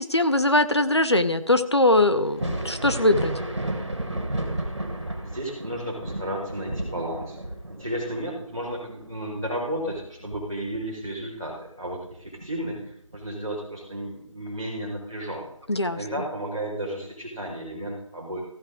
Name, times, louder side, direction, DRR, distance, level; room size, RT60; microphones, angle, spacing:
voice 1, 0.0-3.3 15.7-16.0, left 1 dB, 50° left, 11 dB, 0.8 m, -21 dB
Thunder, 2.2-11.6 11.9-13.2 14.7-14.8 15.6-15.8, right 1 dB, 55° right, 2.6 m, -33 dB
voice 2, 5.2-7.4 7.7-15.5 15.9-18.4, right 1 dB, 5° right, -12 dB, 2.2 m, -33 dB
15.0 x 9.4 x 3.7 m, 0.68 s
figure-of-eight pair, 180°, 18 cm